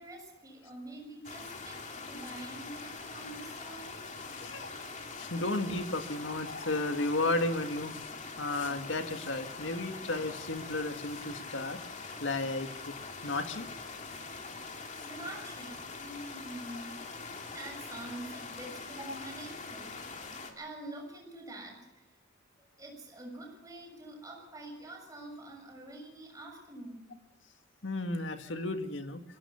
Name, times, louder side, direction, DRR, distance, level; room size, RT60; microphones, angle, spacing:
voice 1, 0.0-3.9 14.8-17.0 17.5-22.2 22.8-27.1, right 1 dB, 15° right, -1 dB, 6.7 m, -46 dB
sound 1, 1.2-20.5, left 4 dB, 40° left, 2.6 m, -43 dB
voice 2, 4.3-4.7 5.1-8.1 8.4-11.8 12.2-13.0 13.2-13.7 19.1-19.2 27.8-29.2, left 2 dB, 65° left, 7 dB, 1.9 m, -33 dB
22.5 x 16.5 x 7.1 m, 0.96 s
head